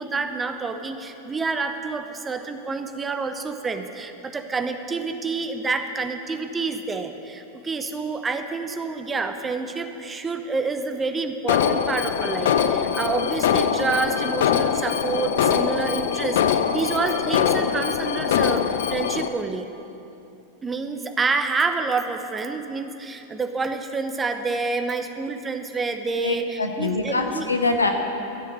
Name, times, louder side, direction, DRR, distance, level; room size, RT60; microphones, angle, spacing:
voice 1, 0.0-19.7 20.6-27.5, right 4 dB, 15° right, 7 dB, 0.8 m, -28 dB
Alarm, 11.5-19.3, left 8 dB, 55° left, 0.6 m, -23 dB
voice 2, 26.2-27.9, left 3 dB, 80° left, 4 dB, 1.1 m, -24 dB
13.5 x 6.8 x 9.4 m, 2.9 s
figure-of-eight pair, 90°, 0 cm